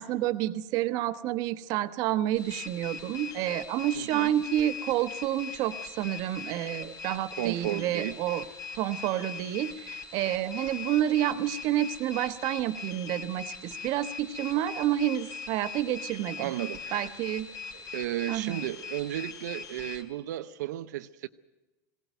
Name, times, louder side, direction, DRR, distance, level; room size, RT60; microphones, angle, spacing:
voice 1, 0.0-8.4 8.8-16.5 16.9-17.5 18.3-18.7, right 12 dB, 45° right, 1.1 m, -29 dB
sound 1, 2.3-20.0, left 6 dB, 30° left, 3.3 m, -41 dB
voice 2, 4.0-4.3 7.4-8.2 16.4-17.1 17.7-21.3, right 14 dB, 85° right, 0.7 m, -34 dB
20.5 x 17.0 x 9.1 m
supercardioid pair, 160°, 9 cm